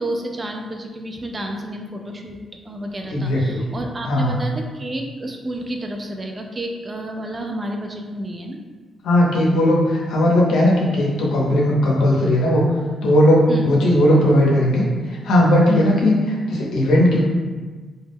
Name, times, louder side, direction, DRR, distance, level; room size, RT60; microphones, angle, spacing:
voice 1, 0.0-2.4 2.6-8.6 13.5-13.8 15.9-16.0, right 1 dB, 30° right, 2 dB, 0.3 m, -30 dB
voice 2, 3.1-3.7 4.0-4.4 9.0-12.7 13.0-17.2, left 1 dB, 85° left, -3 dB, 0.6 m, -17 dB
2.2 x 2.0 x 3.3 m, 1.4 s
cardioid pair, 105°, 0 cm